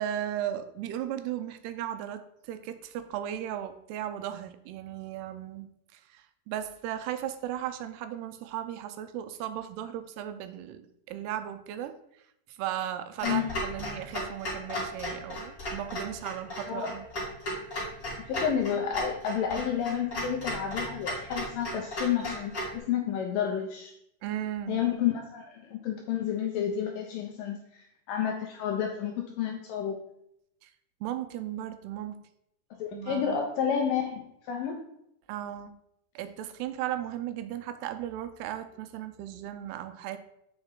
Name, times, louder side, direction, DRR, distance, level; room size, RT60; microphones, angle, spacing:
voice 1, 0.0-12.0 12.5-17.1 24.2-24.8 30.6-30.7 31.0-32.2 32.9-33.4 35.3-35.7 36.2-40.2, right 11 dB, 85° right, 10 dB, 2.6 m, -36 dB
voice 2, 13.2-13.6 16.7-17.0 18.3-23.9 24.7-27.6 28.1-30.0 32.8-34.8, left 8 dB, 75° left, 2 dB, 2.1 m, -30 dB
Clock, 13.2-22.8, left 1 dB, 30° left, 1.8 m, -36 dB
7.9 x 5.3 x 3.7 m, 0.77 s
omnidirectional pair, 4.7 m